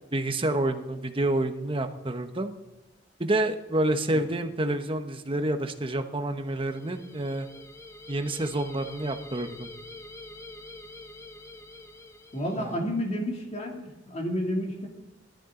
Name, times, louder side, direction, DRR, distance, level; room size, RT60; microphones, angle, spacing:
voice 1, 0.1-2.5 3.2-7.5 8.1-9.7 12.6-12.7, right 1 dB, 30° right, 7 dB, 1.1 m, -28 dB
sound 1, 6.5-12.9, left 2 dB, 15° left, 1.0 m, -46 dB
voice 2, 12.3-14.9, equal, 35° left, 1 dB, 2.7 m, -31 dB
18.0 x 13.0 x 3.9 m, 1.0 s
head